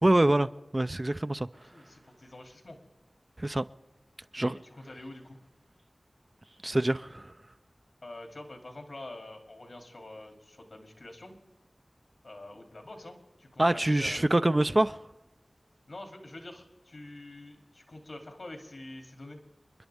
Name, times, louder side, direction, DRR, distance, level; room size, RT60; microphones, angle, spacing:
voice 1, 0.0-1.7 3.4-3.6 4.3-4.6 6.6-7.3 13.6-15.0, right 1 dB, 30° right, 0.4 m, -25 dB
voice 2, 1.6-2.8 4.4-5.4 8.0-11.4 12.2-14.6 15.9-19.4, left 1 dB, 70° left, 2.8 m, -46 dB
28.5 x 11.0 x 3.5 m
wide cardioid pair, 55°, 0 cm